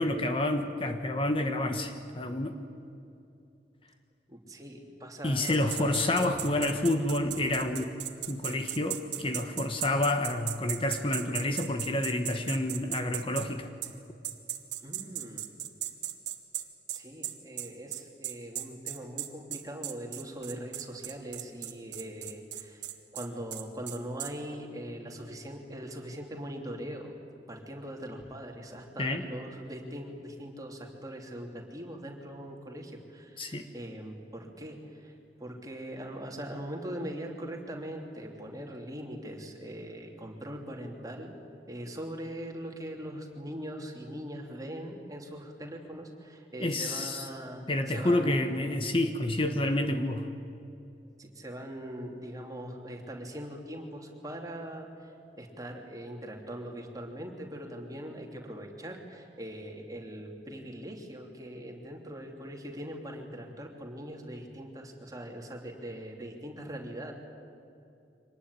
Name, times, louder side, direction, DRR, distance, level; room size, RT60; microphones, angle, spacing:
voice 1, 0.0-2.6 5.2-7.9 8.3-13.7 29.0-29.2 33.4-33.6 46.6-47.3 47.7-50.3, left 1 dB, 30° left, 6 dB, 1.2 m, -29 dB
voice 2, 4.3-6.2 14.8-15.5 16.9-27.1 27.5-41.3 41.7-48.8 51.2-67.1, equal, 20° right, 1 dB, 3.1 m, -41 dB
sound 1, 5.5-13.5 13.8-13.9 14.2-24.3, right 12 dB, 80° right, 1.7 m, -37 dB
25.0 x 19.5 x 9.8 m, 2.7 s
head